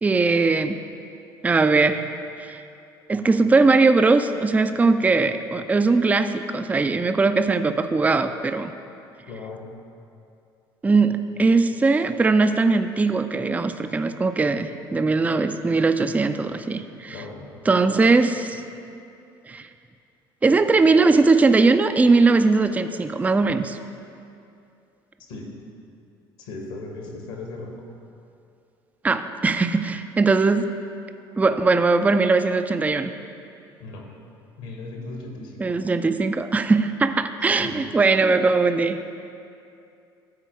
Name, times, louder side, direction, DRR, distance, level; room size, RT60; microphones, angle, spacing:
voice 1, 0.0-0.8 1.4-2.1 2.4-2.6 3.1-8.7 10.8-17.2 17.7-18.6 19.5-19.7 20.4-23.8 29.0-30.7 31.4-33.1 35.6-39.0, right 3 dB, 10° right, 9 dB, 0.4 m, -20 dB
voice 2, 9.3-9.7 17.1-17.6 25.3-25.5 26.4-27.8 33.8-34.1 34.6-35.6 37.6-37.8, left 2 dB, 65° left, 1 dB, 1.5 m, -37 dB
13.5 x 4.4 x 4.5 m, 2.5 s
figure-of-eight pair, 55°, 13 cm